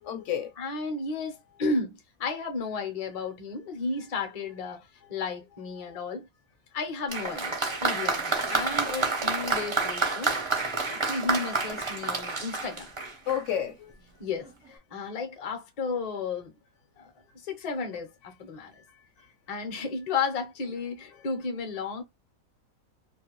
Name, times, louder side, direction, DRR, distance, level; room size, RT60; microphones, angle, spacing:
voice 1, 0.0-0.9 4.3-4.5 5.0-5.2 5.7-6.0 13.2-14.0 17.2-17.3 18.7-19.3 21.1-21.3, left 9 dB, 70° left, 0.9 m, -34 dB
voice 2, 0.6-6.3 6.7-10.4 10.9-12.9 14.2-16.5 17.0-18.8 19.5-22.0, left 4 dB, 40° left, 0.6 m, -33 dB
Applause, 7.1-13.6 14.5-14.6, right 3 dB, 40° right, 0.4 m, -29 dB
2.5 x 2.2 x 2.9 m
omnidirectional pair, 1.4 m